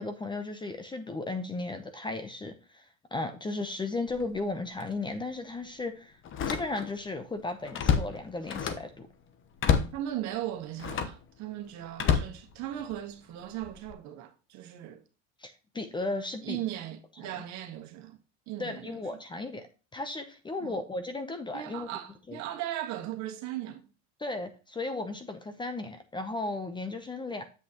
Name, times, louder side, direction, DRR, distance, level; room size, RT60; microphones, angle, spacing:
voice 1, 0.0-2.8 3.1-6.2 6.5-9.1 15.4-16.6 18.6-19.6 19.9-21.9 22.3-22.4 24.2-27.5, left 2 dB, 15° left, 0.8 m, -35 dB
Slam, 4.1-4.4 4.8-4.9 6.2-7.1 7.4-9.0 9.6-10.0 10.8-11.2 11.9-13.0 13.6-13.9, left 7 dB, 35° left, 1.0 m, -29 dB
voice 2, 9.9-15.0 16.4-18.2 18.5-19.0 20.6-20.8 21.5-23.8, right 12 dB, 50° right, 1.5 m, -38 dB
7.9 x 6.3 x 2.9 m
supercardioid pair, 115°, 36 cm